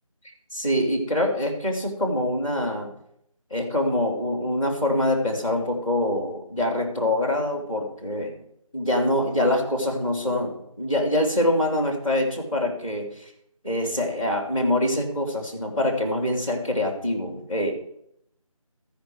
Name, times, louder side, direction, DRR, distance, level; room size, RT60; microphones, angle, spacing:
voice 1, 0.5-2.9 3.5-8.4 8.7-13.3 13.6-17.7, left 1 dB, 5° left, -12 dB, 1.3 m, -25 dB
14.5 x 5.2 x 4.7 m, 0.73 s
figure-of-eight pair, 170°, 18 cm